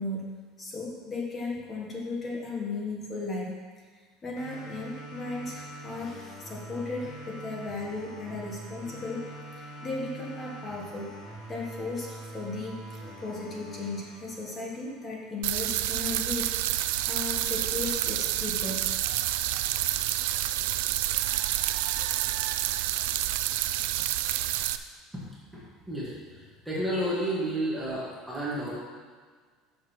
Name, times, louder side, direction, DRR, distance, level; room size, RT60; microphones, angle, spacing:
voice 1, 0.0-3.6 4.2-9.3 9.6-11.2 11.5-19.3, left 3 dB, 20° left, -2 dB, 1.2 m, -36 dB
sound 1, 4.4-15.3, right 1 dB, 50° left, 2.7 m, -44 dB
sound 2, 15.4-24.8, right 14 dB, 90° right, 0.4 m, -28 dB
voice 2, 26.7-28.7, right 1 dB, 5° right, -8 dB, 1.8 m, -30 dB
12.0 x 6.5 x 3.1 m, 1.5 s
cardioid pair, 165°, 0 cm